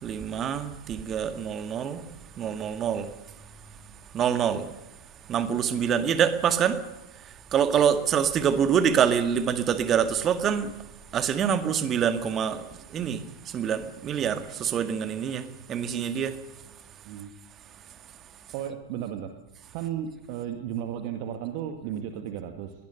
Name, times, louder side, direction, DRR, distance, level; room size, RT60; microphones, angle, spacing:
voice 1, 0.0-2.0 2.4-3.2 4.1-4.7 5.3-6.8 7.2-10.7 11.1-16.4, right 8 dB, 30° right, 2.0 m, -26 dB
voice 2, 18.5-19.3 19.7-22.7, right 10 dB, 45° right, 2.0 m, -34 dB
22.5 x 19.0 x 6.6 m
figure-of-eight pair, 90°, 0 cm